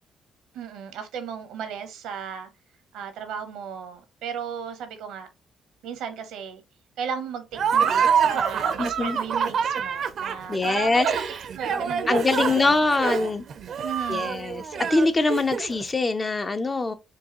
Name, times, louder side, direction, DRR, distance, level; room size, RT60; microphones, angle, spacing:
voice 1, 0.5-2.5 2.9-5.3 5.8-6.6 7.0-11.2 11.5-13.2 13.8-14.4, right 7 dB, 90° right, 0.8 m, -35 dB
Laughter, 7.5-15.8, right 7 dB, 60° right, 0.5 m, -26 dB
voice 2, 8.8-9.2 10.5-11.1 12.1-13.4 14.1-14.6 14.9-16.9, left 3 dB, 25° left, 0.5 m, -23 dB
4.6 x 2.3 x 2.9 m
cardioid pair, 90°, 0 cm